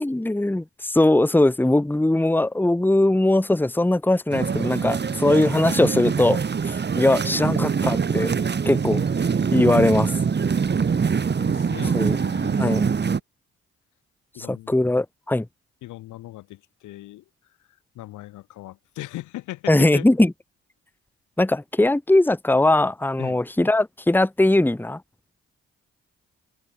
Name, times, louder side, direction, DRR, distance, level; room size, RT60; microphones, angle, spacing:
voice 1, 0.0-8.3 8.6-9.0 9.5-10.1 11.9-12.2 12.6-12.9 14.4-15.5 19.7-20.3 21.4-25.0, left 1 dB, 5° left, 1.1 m, -20 dB
sound 1, 4.3-13.2, right 6 dB, 35° right, 1.1 m, -24 dB
voice 2, 11.4-12.9 14.3-14.8 15.8-17.2 17.9-20.1 23.2-23.4, left 16 dB, 85° left, 4.5 m, -38 dB
supercardioid pair, 50°, 29 cm